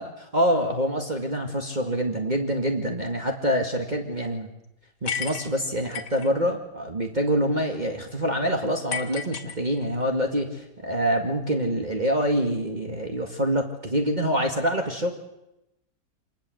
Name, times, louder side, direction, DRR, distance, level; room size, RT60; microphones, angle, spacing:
voice 1, 0.0-4.5 5.0-15.1, equal, 25° right, 2 dB, 2.1 m, -26 dB
sound 1, 5.1-6.3 8.9-10.1, left 7 dB, 85° left, 2.5 m, -33 dB
26.0 x 20.0 x 7.9 m, 0.90 s
omnidirectional pair, 1.8 m